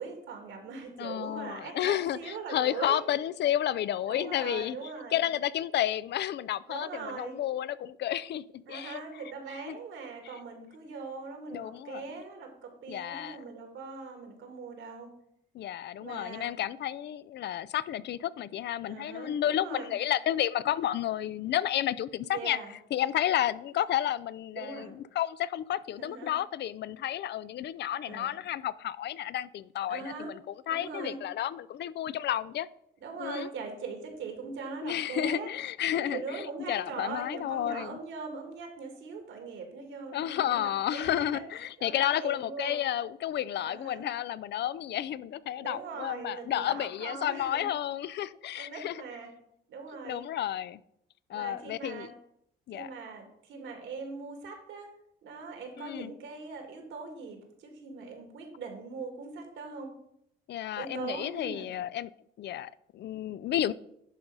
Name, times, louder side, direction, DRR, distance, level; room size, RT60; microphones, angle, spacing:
voice 1, 0.0-3.0 4.1-5.2 6.7-7.4 8.6-15.1 16.0-16.5 18.9-19.9 22.3-22.7 24.5-24.9 26.0-26.3 28.1-28.4 29.9-30.3 30.7-31.2 33.0-35.5 35.9-41.4 41.8-42.8 43.6-44.1 45.6-47.7 48.5-49.3 49.7-50.2 51.3-52.1 52.7-54.9 55.2-59.9 60.7-61.7, right 4 dB, 75° right, 2.2 m, -41 dB
voice 2, 1.0-4.8 5.1-9.0 9.6-9.8 11.5-12.0 12.9-13.4 15.5-22.6 22.9-32.7 33.2-33.5 34.8-38.0 40.1-49.0 50.0-50.8 51.3-52.1 52.7-52.9 55.8-56.1 60.5-62.1 62.4-63.7, left 11 dB, 60° left, 0.4 m, -31 dB
10.5 x 3.9 x 5.4 m
cardioid pair, 90°, 20 cm